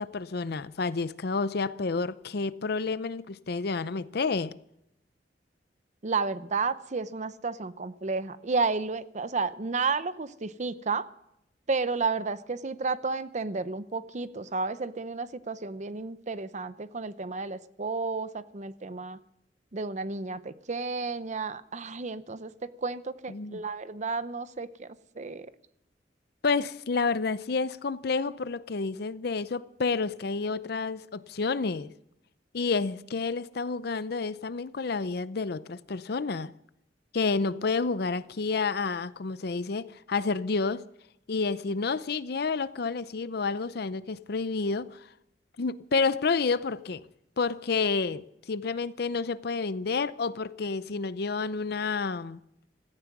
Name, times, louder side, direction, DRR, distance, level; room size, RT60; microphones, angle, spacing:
voice 1, 0.0-4.5 23.3-23.6 26.4-31.9 32.5-36.5 37.1-40.8 41.3-45.0 45.6-47.0 47.4-52.4, left 4 dB, 60° left, 0.6 m, -29 dB
voice 2, 6.0-11.1 11.7-19.2 19.7-22.5 22.8-24.9 25.2-25.5, right 4 dB, 40° right, 0.7 m, -32 dB
16.5 x 14.5 x 6.0 m
head